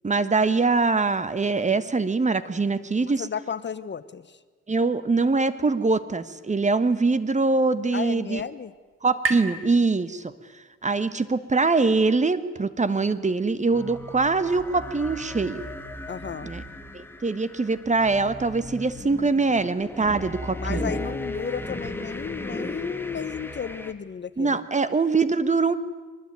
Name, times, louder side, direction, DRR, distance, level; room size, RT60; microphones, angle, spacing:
voice 1, 0.0-3.3 4.7-8.4 9.0-10.2 10.8-15.6 16.4-16.6 16.9-20.9 24.4-25.8, right 3 dB, 25° right, 14 dB, 1.3 m, -23 dB
voice 2, 3.0-4.4 7.9-8.7 16.1-16.5 20.6-24.6, left 7 dB, 35° left, 14 dB, 1.1 m, -33 dB
sound 1, 6.9-10.7, right 3 dB, 45° right, 3.0 m, -36 dB
sound 2, 13.7-23.9, left 1 dB, 5° left, 2.1 m, -36 dB
23.0 x 20.0 x 9.4 m, 1.4 s
cardioid pair, 90°, 30 cm